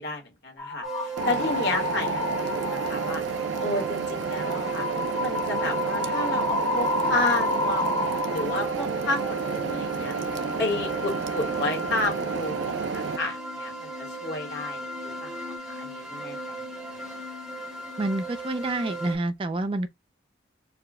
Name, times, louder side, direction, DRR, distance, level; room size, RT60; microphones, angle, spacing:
voice 1, 0.0-4.9 5.2-10.1 10.6-16.6, left 2 dB, 65° left, 1.4 m, -32 dB
sound 1, 0.6-3.2 3.5-3.8 4.3-14.6 14.9-15.6, left 2 dB, 20° left, 0.6 m, -32 dB
sound 2, 0.8-19.1, right 4 dB, ahead, 1.0 m, -36 dB
sound 3, 1.2-13.2, right 5 dB, 80° right, 0.5 m, -31 dB
voice 2, 18.0-19.9, right 2 dB, 25° right, 0.3 m, -28 dB
4.8 x 2.2 x 3.6 m
head